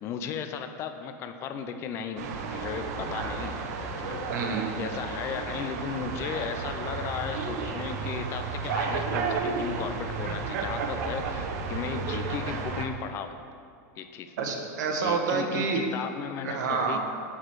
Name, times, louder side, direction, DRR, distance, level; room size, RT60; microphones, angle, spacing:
voice 1, 0.0-3.7 4.0-4.2 4.8-13.4 14.0-14.3 15.0-17.0, left 7 dB, 30° left, 8 dB, 0.4 m, -35 dB
sound 1, 2.2-12.8, right 4 dB, 65° right, 0.9 m, -32 dB
voice 2, 4.3-4.7 14.4-15.8 16.4-17.0, right 5 dB, 85° right, 2 dB, 1.2 m, -28 dB
7.5 x 6.2 x 4.7 m, 2.3 s
supercardioid pair, 160°, 10 cm